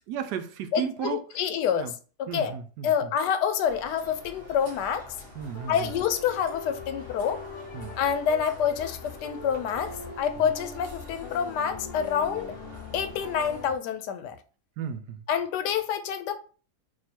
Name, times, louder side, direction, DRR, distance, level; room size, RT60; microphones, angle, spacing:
voice 1, 0.1-1.2 1.7-1.9 2.3-3.1 5.4-5.7 7.7-7.9 14.8-15.2, right 8 dB, 80° right, 1.1 m, -34 dB
voice 2, 0.7-1.9 2.2-2.6 2.8-5.0 5.7-7.4 8.0-12.5 12.9-14.4 15.3-16.3, left 8 dB, 80° left, 1.2 m, -27 dB
sound 1, 3.7-13.7, left 1 dB, 50° right, 1.5 m, -47 dB
sound 2, 4.7-13.8, left 4 dB, 65° left, 0.9 m, -42 dB
3.7 x 2.6 x 4.3 m
omnidirectional pair, 1.8 m